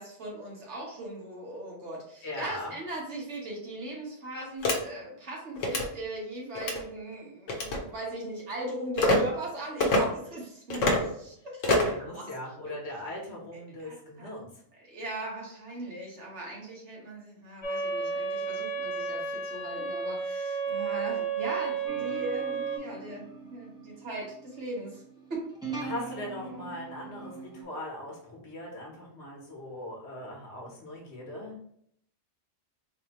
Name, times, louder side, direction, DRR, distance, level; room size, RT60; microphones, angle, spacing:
voice 1, 0.0-12.3 13.5-14.3 14.7-25.0 25.3-25.5, right 1 dB, 70° right, -3 dB, 1.5 m, -39 dB
voice 2, 2.2-2.7 11.8-14.5 25.8-31.6, left 1 dB, 65° left, -1 dB, 1.2 m, -40 dB
sound 1, 4.6-4.8 5.6-5.9 6.5-6.8 7.5-7.8 9.0-9.2 9.8-10.0 10.7-11.0 11.6-12.0, left 1 dB, 90° left, 1.1 m, -24 dB
sound 2, 17.6-22.8, right 5 dB, 30° left, 0.7 m, -32 dB
sound 3, 21.9-27.6, right 4 dB, 5° right, 0.8 m, -42 dB
4.1 x 2.6 x 2.9 m, 0.69 s
omnidirectional pair, 1.3 m